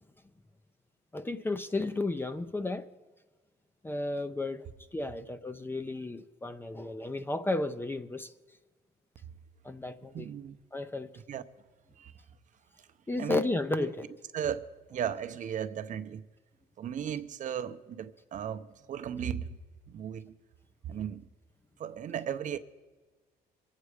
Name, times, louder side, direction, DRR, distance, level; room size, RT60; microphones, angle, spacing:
voice 1, 1.1-2.9 3.8-4.7 4.9-8.3 9.6-10.3 10.7-11.1 13.1-14.1, left 2 dB, 15° left, 0.5 m, -33 dB
voice 2, 10.1-10.6 11.3-11.4 12.0-12.1 13.2-13.4 14.3-16.3 16.8-19.6 19.9-20.3 20.8-21.3 21.8-22.6, right 9 dB, 50° right, 0.7 m, -36 dB
22.5 x 8.2 x 4.9 m
cardioid pair, 110°, 17 cm